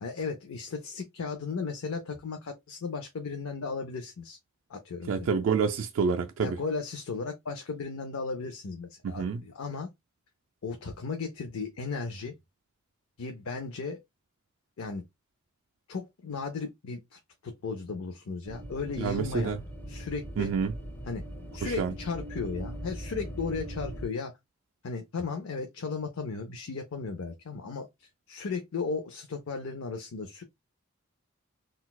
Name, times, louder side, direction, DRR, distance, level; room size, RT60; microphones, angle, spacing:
voice 1, 0.0-4.4 4.7-5.3 6.4-9.9 10.6-12.3 13.2-14.0 14.8-15.0 15.9-19.6 19.9-20.5 21.1-21.2 21.5-24.3 24.8-30.4, left 4 dB, 80° left, 0.6 m, -35 dB
voice 2, 5.1-6.6 9.0-9.4 19.0-19.6 20.4-20.7 21.6-21.9, right 6 dB, 65° right, 0.3 m, -28 dB
sound 1, 18.4-24.1, equal, 10° left, 0.5 m, -40 dB
3.9 x 2.3 x 2.3 m
head